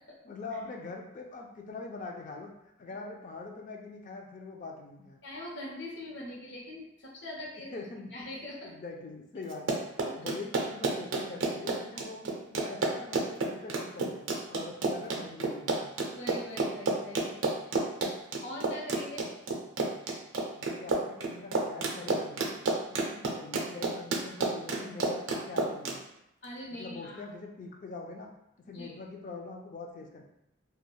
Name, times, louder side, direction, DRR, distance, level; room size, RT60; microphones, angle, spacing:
voice 1, 0.2-5.2 7.7-8.1 8.6-9.8 10.1-12.2 12.5-15.9 20.6-22.6 22.9-26.0 26.7-28.3 28.7-30.2, left 3 dB, 40° left, 1 dB, 0.3 m, -43 dB
voice 2, 5.2-7.7 8.1-8.7 9.4-9.5 10.1-10.2 11.9-12.1 16.1-17.6 18.4-19.3 26.4-27.3 28.7-28.9, left 1 dB, 60° left, -3 dB, 0.7 m, -42 dB
Run, 9.5-26.0, right 3 dB, 75° right, 0.4 m, -30 dB
3.2 x 2.2 x 2.2 m, 0.85 s
head